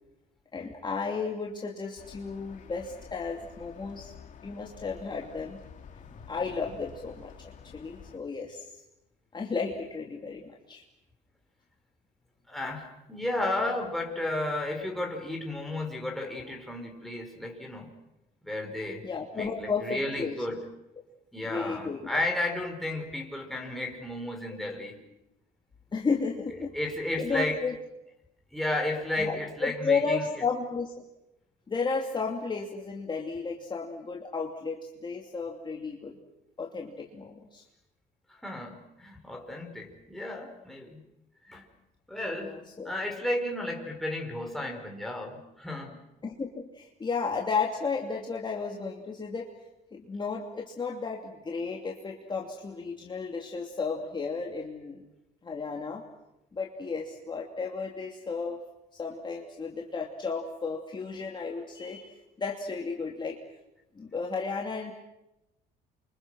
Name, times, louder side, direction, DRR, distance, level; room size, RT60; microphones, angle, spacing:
voice 1, 0.5-4.1 4.4-5.6 6.0-8.8 9.3-10.8 19.0-20.4 21.4-22.2 25.9-26.7 27.2-27.7 29.2-30.9 31.7-36.1 36.6-37.6 42.4-42.9 46.2-49.5 49.9-55.0 55.4-56.0 56.5-58.6 58.9-63.4 63.9-64.9, left 4 dB, 25° left, -1 dB, 2.9 m, -33 dB
sound 1, 2.0-8.2, left 7 dB, 50° left, 2.5 m, -50 dB
voice 2, 12.5-17.9 18.4-19.0 19.3-20.6 21.3-25.0 26.7-27.6 28.5-30.3 38.3-41.0 41.4-41.7 42.1-46.0, left 1 dB, ahead, 1 dB, 5.2 m, -33 dB
29.0 x 25.0 x 6.4 m, 0.91 s
cardioid pair, 110°, 17 cm